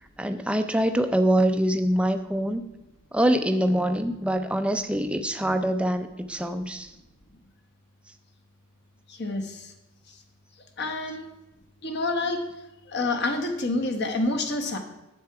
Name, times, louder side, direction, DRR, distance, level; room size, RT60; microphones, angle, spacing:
voice 1, 0.2-2.6 3.1-6.9, right 1 dB, 5° right, 8 dB, 0.4 m, -24 dB
voice 2, 9.1-9.7 10.1-10.2 10.8-11.3 11.8-12.4 12.9-14.8, left 2 dB, 50° left, 5 dB, 1.1 m, -28 dB
9.6 x 7.7 x 4.7 m, 0.98 s
head